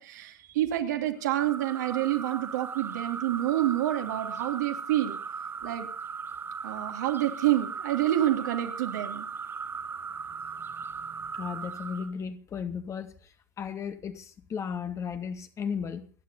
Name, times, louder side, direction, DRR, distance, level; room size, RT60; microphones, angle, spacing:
voice 1, 0.0-5.2 5.6-5.9 6.6-9.3, right 13 dB, 65° right, 4 dB, 2.8 m, -28 dB
sound 1, 1.3-12.1, right 6 dB, 20° right, 1.7 m, -38 dB
voice 2, 11.3-13.3 13.6-16.1, left 6 dB, 30° left, 8 dB, 2.1 m, -35 dB
29.5 x 10.5 x 4.2 m, 0.40 s
figure-of-eight pair, 80°, 10 cm